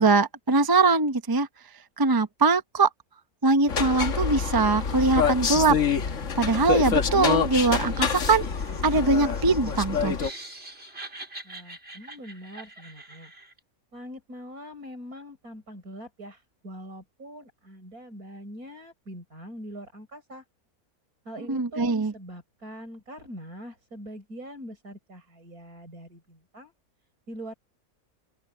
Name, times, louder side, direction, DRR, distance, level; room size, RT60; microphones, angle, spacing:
voice 1, 0.0-1.5 2.0-2.9 3.4-5.8 6.4-8.4 8.8-10.2 21.5-22.1, right 3 dB, 20° right, 0.6 m, -22 dB
sound 1, 3.7-10.3, left 6 dB, 60° left, 1.6 m, -26 dB
Laughter, 7.8-13.6, right 2 dB, 40° right, 5.1 m, -44 dB
voice 2, 11.4-13.3 13.9-20.4 21.3-26.7 27.3-27.5, equal, 75° right, 7.2 m, -43 dB
open air
omnidirectional pair, 1.6 m